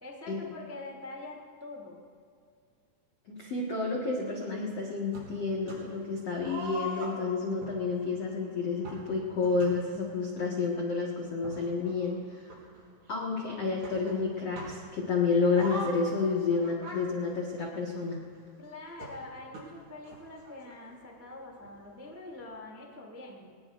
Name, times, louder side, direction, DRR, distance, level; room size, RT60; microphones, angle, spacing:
voice 1, 0.0-2.0 18.6-23.5, left 2 dB, 10° right, -2 dB, 0.7 m, -44 dB
voice 2, 3.3-12.5 13.1-18.2, left 4 dB, 65° left, -3 dB, 1.5 m, -30 dB
sound 1, 5.1-6.0 6.4-10.2 10.9-11.0 11.3-13.2 13.8-15.0 15.4-18.2 19.0-21.0 21.3-21.4 21.6-21.7 22.4-22.5, right 1 dB, 55° right, 6.5 m, -43 dB
24.5 x 20.0 x 2.6 m, 2.3 s
omnidirectional pair, 5.7 m